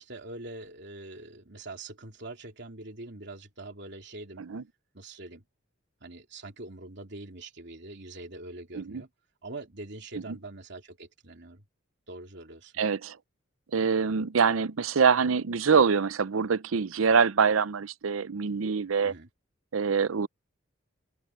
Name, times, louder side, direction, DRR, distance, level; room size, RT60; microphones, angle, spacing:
voice 1, 0.0-4.4 4.9-5.4 6.0-9.1 9.4-11.6 12.1-12.7 19.0-19.3, right 2 dB, 55° right, 3.3 m, -43 dB
voice 2, 12.8-13.2 13.7-19.1 19.7-20.3, right 5 dB, 80° right, 0.6 m, -25 dB
head